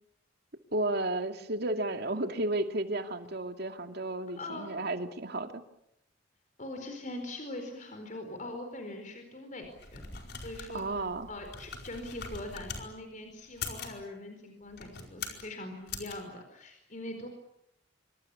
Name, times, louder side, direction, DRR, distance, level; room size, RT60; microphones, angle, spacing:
voice 1, 0.7-5.6 10.7-11.3, right 2 dB, 60° right, 6 dB, 2.5 m, -33 dB
voice 2, 4.4-4.7 6.6-17.3, left 1 dB, 45° left, 5 dB, 4.6 m, -42 dB
sound 1, 9.6-12.9 13.5-14.0 14.7-15.5 15.9-16.1, left 5 dB, 60° left, 4.7 m, -42 dB
25.5 x 25.0 x 8.5 m, 0.78 s
head